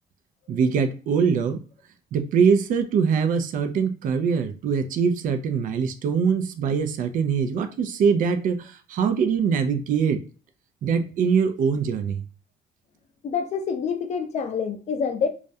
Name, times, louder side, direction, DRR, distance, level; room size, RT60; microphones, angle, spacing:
voice 1, 0.5-1.6 2.1-10.2 10.8-12.2, right 6 dB, 50° right, 0.4 m, -23 dB
voice 2, 13.2-15.3, left 6 dB, 45° left, 0.5 m, -27 dB
2.4 x 2.1 x 2.6 m
cardioid pair, 110°, 17 cm